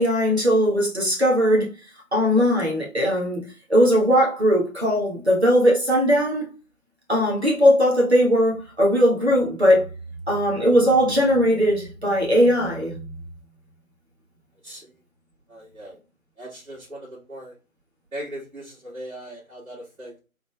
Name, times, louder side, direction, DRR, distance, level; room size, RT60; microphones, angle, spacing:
voice 1, 0.0-1.7 2.1-3.4 3.7-6.5 7.1-9.9 10.3-13.1, equal, 50° right, 1.5 m, -19 dB
voice 2, 15.5-16.0 16.4-17.5 18.1-20.2, right 1 dB, 80° right, 2.2 m, -39 dB
3.8 x 3.5 x 2.3 m
figure-of-eight pair, 180°, 42 cm